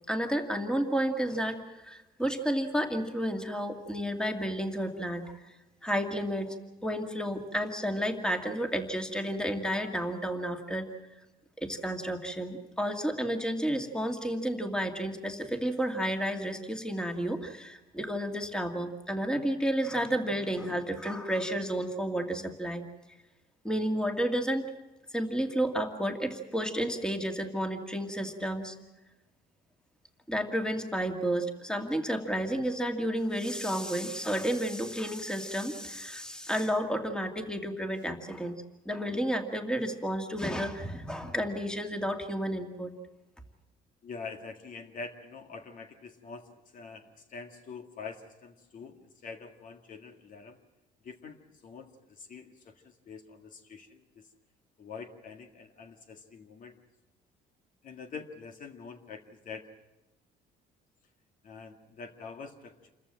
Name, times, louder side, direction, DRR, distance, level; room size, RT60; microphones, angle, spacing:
voice 1, 0.1-5.3 5.8-6.6 6.8-10.9 11.6-22.8 23.6-24.7 25.1-28.8 30.3-38.6 38.9-42.9, equal, 5° left, 5 dB, 2.2 m, -31 dB
voice 2, 44.0-50.6 51.0-54.3 54.8-56.8 57.8-59.7 61.4-62.9, left 4 dB, 50° left, 5 dB, 1.9 m, -45 dB
27.5 x 14.5 x 8.9 m, 1.0 s
cardioid pair, 110°, 17 cm